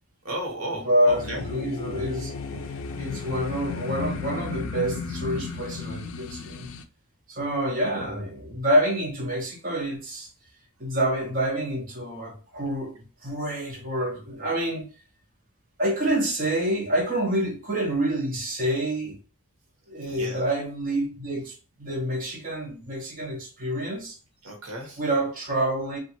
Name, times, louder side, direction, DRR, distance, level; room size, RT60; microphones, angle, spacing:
voice 1, 0.2-1.5 20.1-20.4 24.4-25.0, right 1 dB, 80° right, 1.0 m, -34 dB
voice 2, 0.8-2.7 2.9-6.7 7.3-10.3 10.8-14.9 15.8-19.2 19.9-24.2 25.0-26.0, right 1 dB, 40° right, 0.8 m, -27 dB
sound 1, 1.1-6.8, left 4 dB, 60° left, 0.3 m, -34 dB
2.9 x 2.3 x 2.7 m
head